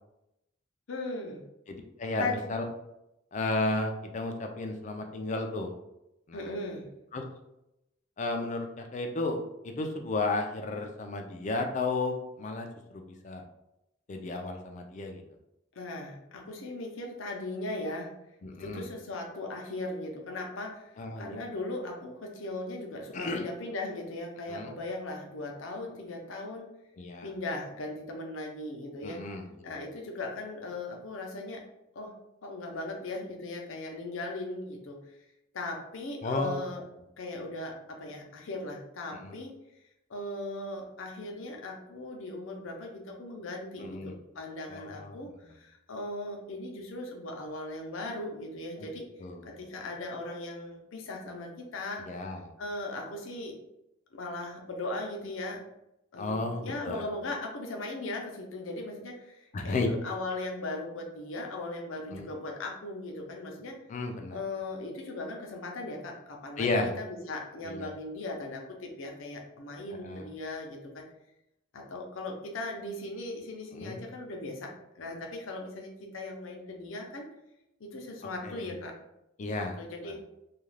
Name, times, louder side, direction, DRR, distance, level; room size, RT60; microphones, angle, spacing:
voice 1, 0.9-1.4 2.2-2.4 6.3-6.9 15.7-18.1 18.6-26.8 27.2-29.2 29.6-31.6 31.9-32.1 32.4-35.1 35.5-36.9 37.2-39.5 40.1-49.1 49.4-52.3 52.6-53.6 54.1-55.6 56.1-63.8 64.3-71.0 71.7-77.3 77.8-78.9 79.8-80.2, left 2 dB, 80° left, 1 dB, 0.6 m, -38 dB
voice 2, 1.7-2.6 3.3-5.7 6.3-6.5 7.1-7.2 8.2-9.4 9.6-12.7 13.2-13.4 14.1-15.2 18.4-18.9 21.0-21.2 23.1-23.4 24.5-24.7 27.0-27.3 29.0-29.7 36.2-36.6 39.2-39.3 43.8-44.1 44.7-45.2 48.8-48.9 49.2-49.5 52.1-52.4 56.2-57.0 59.5-59.9 62.1-62.3 63.9-64.4 66.6-66.9 67.6-67.9 70.0-70.3 73.7-74.0 78.4-78.7 79.4-79.8 80.1-80.2, left 2 dB, 35° left, 4 dB, 0.3 m, -33 dB
2.4 x 2.3 x 3.1 m, 0.87 s
head